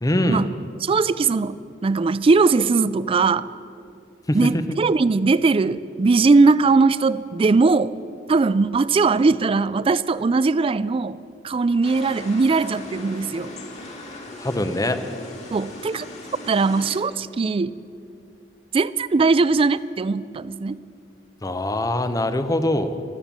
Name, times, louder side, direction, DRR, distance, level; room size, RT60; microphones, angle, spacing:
voice 1, 0.0-0.5 4.3-4.6 14.4-15.0 21.4-23.0, left 1 dB, 20° left, 10 dB, 0.8 m, -23 dB
voice 2, 0.8-3.5 4.3-7.9 8.3-11.2 11.4-13.5 15.5-16.1 16.5-17.8 18.7-20.8, right 4 dB, 30° right, 17 dB, 0.3 m, -20 dB
sound 1, 11.8-17.0, left 1 dB, 40° left, 2.4 m, -38 dB
14.0 x 13.0 x 7.4 m, 2.5 s
head